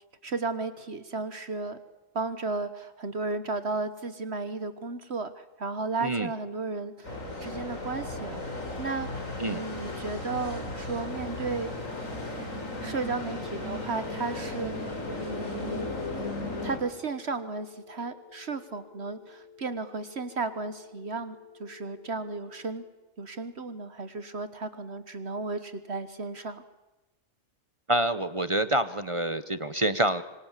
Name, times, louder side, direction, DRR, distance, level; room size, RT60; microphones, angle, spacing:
voice 1, 0.2-1.8 2.1-11.7 12.8-15.9 16.6-22.9 23.2-26.6, right 3 dB, 55° right, 12 dB, 1.5 m, -34 dB
sound 1, 7.0-16.8, left 2 dB, 75° left, 4.6 m, -35 dB
sound 2, 12.8-22.8, left 6 dB, 15° left, 8.1 m, -53 dB
voice 2, 27.9-30.2, right 1 dB, 30° right, 13 dB, 0.9 m, -27 dB
26.0 x 24.5 x 7.4 m, 1.1 s
omnidirectional pair, 1.4 m